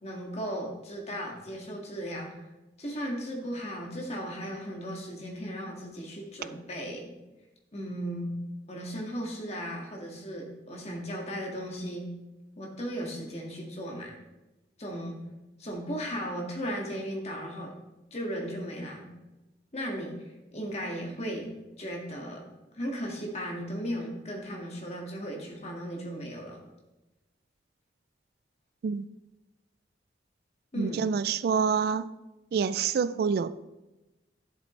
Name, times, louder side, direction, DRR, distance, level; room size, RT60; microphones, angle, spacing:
voice 1, 0.0-2.5 2.8-7.1 7.7-8.4 8.7-12.1 12.6-14.2 14.8-15.2 15.6-17.7 18.1-19.1 19.7-20.2 20.5-21.5 21.8-22.4 22.7-26.6 30.7-31.1, equal, 35° left, 0 dB, 1.8 m, -36 dB
voice 2, 30.8-32.1 32.5-33.6, right 6 dB, 60° right, 15 dB, 0.3 m, -27 dB
11.0 x 7.5 x 3.2 m, 1.0 s
head